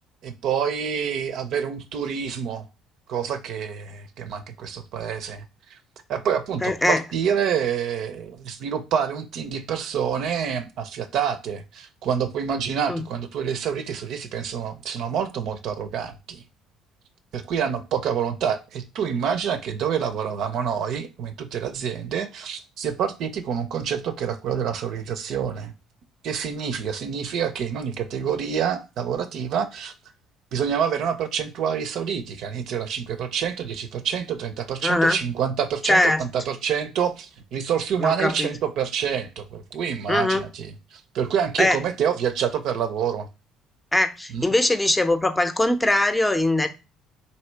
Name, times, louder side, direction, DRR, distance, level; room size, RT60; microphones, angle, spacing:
voice 1, 0.2-2.7 3.1-5.4 5.7-5.8 6.1-16.4 17.3-25.7 26.2-29.9 30.5-43.3 44.3-44.5, right 7 dB, 70° right, 0.5 m, -27 dB
voice 2, 6.6-7.0 12.9-13.0 34.8-35.2 35.8-36.2 38.0-38.5 40.1-40.4 41.6-41.8 43.9-46.7, left 1 dB, 10° left, 0.6 m, -21 dB
3.1 x 2.8 x 4.5 m
supercardioid pair, 80°, 0 cm